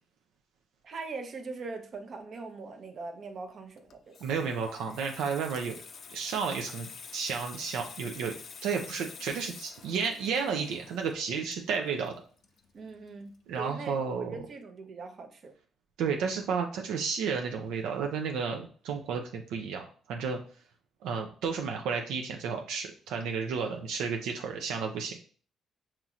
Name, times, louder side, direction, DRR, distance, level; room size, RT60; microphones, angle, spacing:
voice 1, 0.8-4.0 12.7-15.5, right 4 dB, 55° right, 5 dB, 0.7 m, -41 dB
Water tap faucet / Sink (filling or washing), 3.8-13.1 13.4-13.6, left 5 dB, 55° left, 0.4 m, -48 dB
voice 2, 4.2-5.8 6.1-8.3 8.6-12.1 13.5-14.4 16.0-20.4 21.0-25.2, right 6 dB, 90° right, 3 dB, 0.4 m, -32 dB
5.5 x 3.0 x 2.4 m, 0.43 s
cardioid pair, 90°, 0 cm